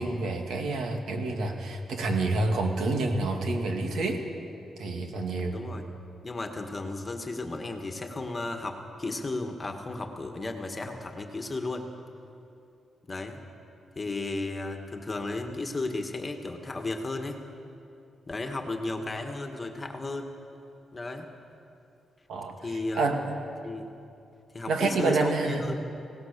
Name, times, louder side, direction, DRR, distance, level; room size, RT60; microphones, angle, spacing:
voice 1, 0.0-4.2 4.8-5.6 22.3-23.2 24.7-25.6, right 3 dB, 80° right, 3 dB, 2.4 m, -28 dB
voice 2, 5.5-5.9 6.2-11.9 13.1-13.4 14.0-17.4 18.3-20.3 20.9-21.3 22.6-23.1 23.6-23.9 24.5-25.9, left 2 dB, 25° left, 4 dB, 1.9 m, -34 dB
24.0 x 17.5 x 6.9 m, 2.6 s
cardioid pair, 110°, 0 cm